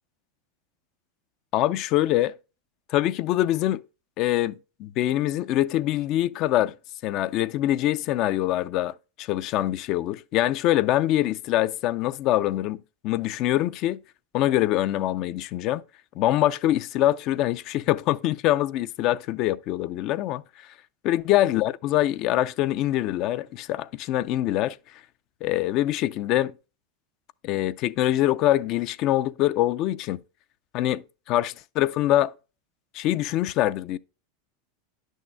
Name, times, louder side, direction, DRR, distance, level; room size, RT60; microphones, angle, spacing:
voice 1, 1.5-2.3 2.9-3.8 4.2-4.5 4.8-6.7 7.0-8.9 9.2-12.8 13.0-14.0 14.3-15.8 16.2-20.4 21.0-24.8 25.4-26.5 27.4-30.2 30.7-32.3 32.9-34.0, left 14 dB, 50° left, 0.4 m, -24 dB
10.5 x 6.3 x 2.2 m
hypercardioid pair, 105°, 0 cm